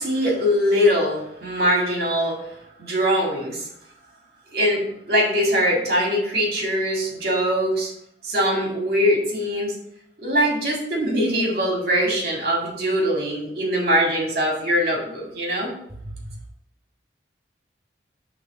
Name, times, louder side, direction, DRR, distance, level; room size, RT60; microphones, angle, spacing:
voice 1, 0.0-3.7 4.5-7.9 8.2-9.7 10.2-15.7, equal, 55° right, -1 dB, 2.0 m, -22 dB
6.5 x 3.4 x 5.8 m, 0.74 s
head